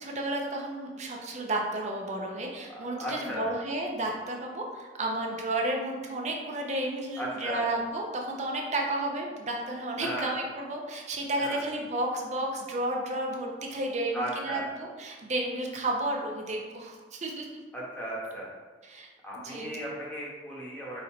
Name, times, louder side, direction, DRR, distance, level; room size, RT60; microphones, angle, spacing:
voice 1, 0.0-17.5 18.8-19.1 19.4-19.7, right 1 dB, 40° right, 0 dB, 0.6 m, -32 dB
voice 2, 2.7-3.5 7.2-7.6 10.0-10.3 11.4-11.6 14.1-14.7 17.7-18.5 19.2-21.0, equal, 10° left, -5 dB, 1.0 m, -36 dB
4.3 x 2.6 x 4.3 m, 1.5 s
head